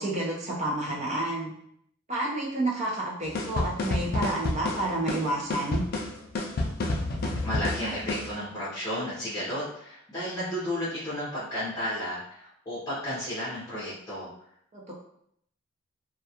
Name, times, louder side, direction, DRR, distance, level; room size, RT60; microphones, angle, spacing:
voice 1, 0.0-1.5 2.1-5.8 14.7-14.9, right 2 dB, 30° right, -4 dB, 0.6 m, -30 dB
sound 1, 3.3-8.3, left 2 dB, 45° left, 0.3 m, -30 dB
voice 2, 7.4-14.3, equal, 15° left, -11 dB, 0.7 m, -33 dB
2.3 x 2.3 x 2.8 m, 0.70 s
head